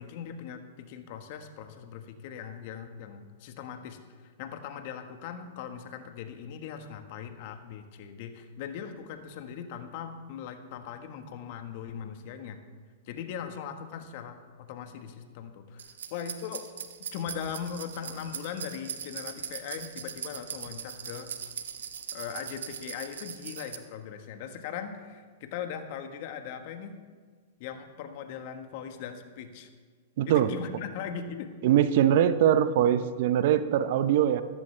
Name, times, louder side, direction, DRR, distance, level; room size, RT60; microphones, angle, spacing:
voice 1, 0.0-12.6 13.0-16.7 17.1-21.3 22.1-27.0 27.6-29.7 30.3-31.5, left 8 dB, 55° left, 7 dB, 1.4 m, -40 dB
sound 1, 15.8-23.8, right 8 dB, 80° right, 1.1 m, -40 dB
voice 2, 30.2-30.5 31.6-34.4, right 10 dB, 60° right, 12 dB, 0.8 m, -22 dB
14.5 x 14.0 x 3.4 m, 1.5 s
hypercardioid pair, 125°, 0 cm